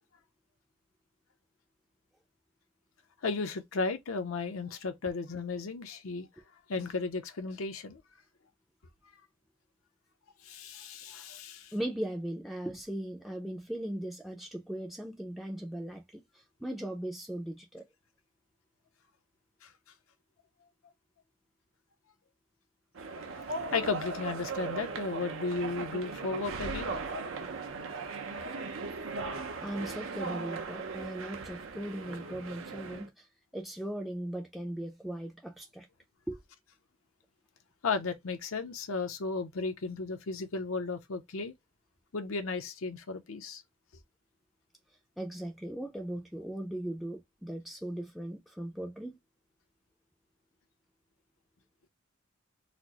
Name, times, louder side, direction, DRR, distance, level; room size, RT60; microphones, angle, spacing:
voice 1, 3.2-6.3 6.7-8.0 10.4-11.7 19.6-19.7 23.5-26.9 37.8-41.5 42.1-43.6, left 4 dB, 80° left, 0.6 m, -34 dB
voice 2, 11.7-16.2 16.6-17.8 29.6-33.3 33.5-35.9 36.3-36.4 45.2-49.2, right 1 dB, ahead, 0.4 m, -38 dB
sound 1, 23.0-33.1, right 4 dB, 65° right, 0.6 m, -38 dB
4.1 x 2.0 x 2.8 m
head